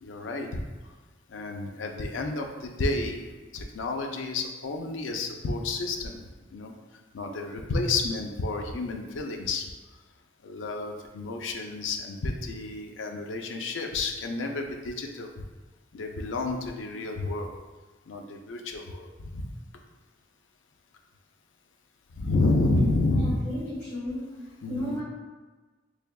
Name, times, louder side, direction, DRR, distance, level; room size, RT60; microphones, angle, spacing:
voice 1, 0.0-0.6 1.3-3.2 3.5-6.2 6.5-6.7 7.1-9.6 10.4-15.3 15.9-17.5 18.1-19.5 22.1-23.4 24.6-25.0, left 2 dB, 85° left, 3 dB, 0.4 m, -30 dB
voice 2, 23.1-24.2 24.7-25.0, equal, 40° left, -13 dB, 1.3 m, -33 dB
3.5 x 3.3 x 2.3 m, 1.3 s
head